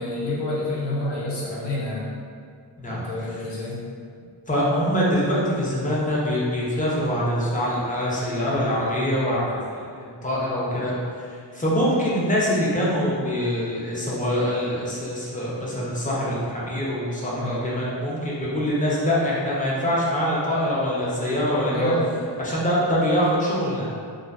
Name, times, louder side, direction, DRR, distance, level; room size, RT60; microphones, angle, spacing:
voice 1, 0.0-2.1 2.9-3.8 17.4-17.7 21.7-22.1, left 1 dB, 70° left, -6 dB, 0.8 m, -28 dB
voice 2, 2.8-3.1 4.5-21.9 22.4-24.0, equal, 20° left, -6 dB, 0.5 m, -24 dB
2.4 x 2.4 x 2.2 m, 2.2 s
wide cardioid pair, 95°, 43 cm